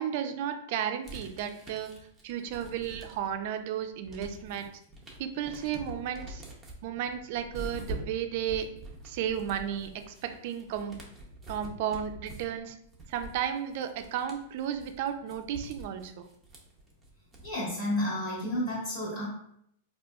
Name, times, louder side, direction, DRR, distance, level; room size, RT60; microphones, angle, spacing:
voice 1, 0.0-2.0 2.2-4.8 5.2-6.4 6.8-8.7 9.0-11.0 11.5-12.8 13.1-16.3, right 9 dB, 50° right, 8 dB, 0.3 m, -33 dB
sound 1, 1.0-3.5 3.8-17.7, right 2 dB, 5° right, 0.6 m, -45 dB
voice 2, 17.4-19.3, left 1 dB, 45° left, -7 dB, 1.4 m, -31 dB
3.9 x 2.7 x 2.3 m, 0.73 s
supercardioid pair, 155°, 0 cm